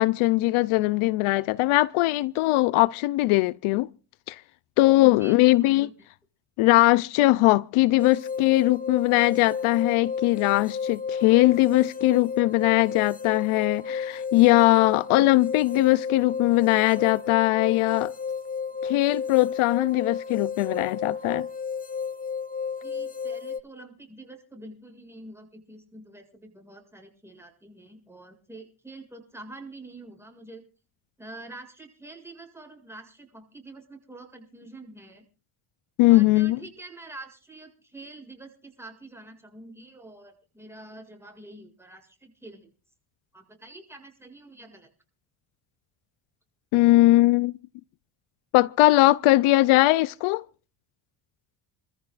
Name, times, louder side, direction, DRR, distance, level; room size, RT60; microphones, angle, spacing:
voice 1, 0.0-3.9 4.3-4.4 4.8-5.9 6.6-18.1 18.8-21.5 36.0-36.6 46.7-47.5 48.5-50.4, left 18 dB, 75° left, 0.7 m, -20 dB
voice 2, 5.0-5.9 22.8-30.6 31.2-35.2 36.1-42.7 43.3-44.9, right 2 dB, 5° right, 7.3 m, -46 dB
sound 1, 8.0-23.6, left 6 dB, 15° left, 1.0 m, -32 dB
28.0 x 14.5 x 2.5 m
supercardioid pair, 80°, 49 cm